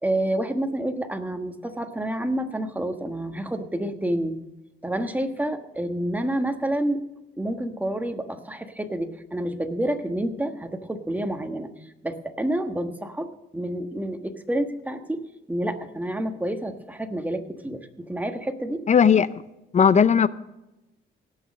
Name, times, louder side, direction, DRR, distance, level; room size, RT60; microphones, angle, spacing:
voice 1, 0.0-4.4 4.8-7.0 7.4-11.7 12.0-15.2 15.5-18.8, right 1 dB, 10° right, 6 dB, 1.3 m, -28 dB
voice 2, 18.9-19.3 19.7-20.3, left 7 dB, 35° left, 16 dB, 0.5 m, -16 dB
17.5 x 6.4 x 6.4 m, 0.95 s
cardioid pair, 90°, 20 cm